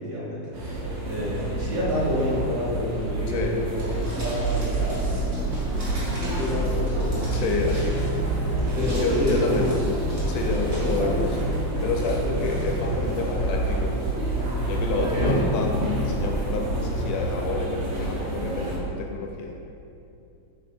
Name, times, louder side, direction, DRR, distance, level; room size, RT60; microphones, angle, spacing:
voice 1, 0.0-7.4 8.8-9.7 10.8-11.3 15.0-15.5, left 1 dB, 60° right, -9 dB, 1.8 m, -29 dB
sound 1, 0.5-18.8, right 2 dB, 75° right, 2.5 m, -29 dB
voice 2, 3.3-3.6 7.3-8.2 8.9-9.7 10.3-11.4 11.8-14.0 14.7-19.6, left 3 dB, 80° left, 1 dB, 2.0 m, -29 dB
sound 2, 3.7-16.3, equal, 40° right, 1.0 m, -37 dB
sound 3, 4.4-16.9, right 1 dB, 50° left, 0.7 m, -31 dB
5.7 x 3.7 x 5.2 m, 2.6 s
omnidirectional pair, 3.8 m